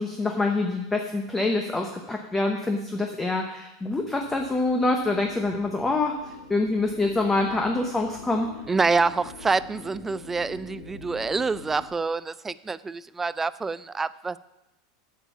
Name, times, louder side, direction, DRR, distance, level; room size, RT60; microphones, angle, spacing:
voice 1, 0.0-6.2 6.5-8.5, left 2 dB, 10° left, 3 dB, 0.9 m, -25 dB
sound 1, 3.9-11.9, left 4 dB, 65° left, 2.0 m, -45 dB
voice 2, 8.7-14.4, right 4 dB, 15° right, 16 dB, 0.3 m, -26 dB
8.5 x 7.3 x 5.6 m, 0.94 s
hypercardioid pair, 115°, 2 cm